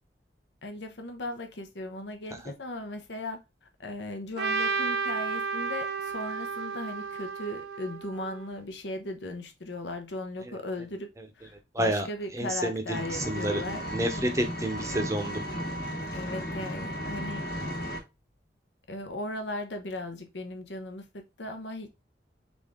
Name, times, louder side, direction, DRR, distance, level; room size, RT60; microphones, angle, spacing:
voice 1, 0.6-11.1 11.4-13.8 14.1-14.3 16.1-17.4 18.9-21.9, left 1 dB, 80° left, 0.9 m, -37 dB
Trumpet, 4.4-8.5, right 5 dB, 65° right, 0.6 m, -32 dB
voice 2, 11.7-12.1 12.3-12.8 13.3-13.6 13.9-15.4, right 1 dB, 15° right, 0.7 m, -28 dB
Engine, 12.9-18.0, equal, 55° left, 1.3 m, -35 dB
3.8 x 3.6 x 3.6 m
head